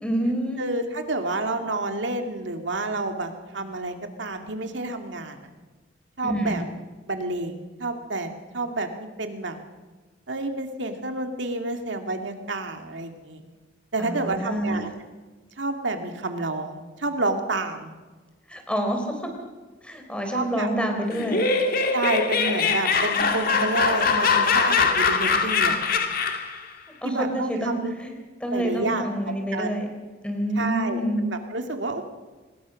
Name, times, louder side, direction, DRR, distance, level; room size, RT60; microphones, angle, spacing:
voice 1, 0.0-0.6 6.2-6.6 14.0-14.9 18.5-19.2 19.8-21.4 27.0-28.1 28.4-29.9 30.2-31.2, equal, 5° left, 3 dB, 4.0 m, -27 dB
voice 2, 0.6-5.5 6.2-6.6 7.1-9.6 10.3-13.4 13.9-14.9 15.6-17.9 20.3-20.7 21.9-25.8 27.0-27.9 28.5-29.1 29.5-29.8 30.6-32.0, right 2 dB, 75° right, 5 dB, 2.3 m, -29 dB
Laughter, 21.1-26.6, left 5 dB, 50° left, 2.1 m, -22 dB
24.0 x 20.0 x 6.3 m, 1.3 s
head